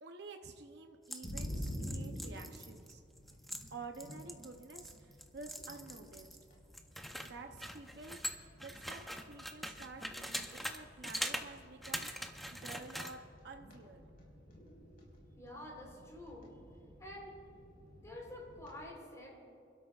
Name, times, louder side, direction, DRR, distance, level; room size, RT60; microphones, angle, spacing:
voice 1, 0.0-3.0 3.7-6.4 7.2-12.1 12.5-14.0, right 3 dB, 60° right, 4 dB, 0.7 m, -50 dB
sound 1, 1.0-6.4 6.7-10.8 11.0-11.5 11.8-13.1, equal, ahead, 0.6 m, -43 dB
mystery mic on PC fan, 1.2-18.8, equal, 50° left, 4.1 m, -50 dB
voice 2, 15.4-16.5 17.0-17.3 18.0-19.3, left 1 dB, 15° left, -3 dB, 3.7 m, -48 dB
28.5 x 12.5 x 2.4 m, 2.6 s
head